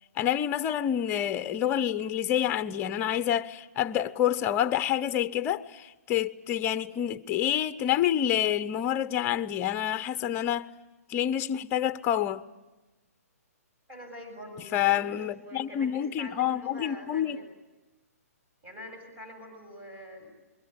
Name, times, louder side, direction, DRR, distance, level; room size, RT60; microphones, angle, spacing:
voice 1, 0.2-10.7 11.1-12.4 14.7-17.4, left 10 dB, 25° left, 0.8 m, -28 dB
voice 2, 13.9-17.5 18.6-20.3, left 1 dB, 20° right, 7.6 m, -45 dB
27.5 x 22.0 x 8.3 m
hypercardioid pair, 140°, 9 cm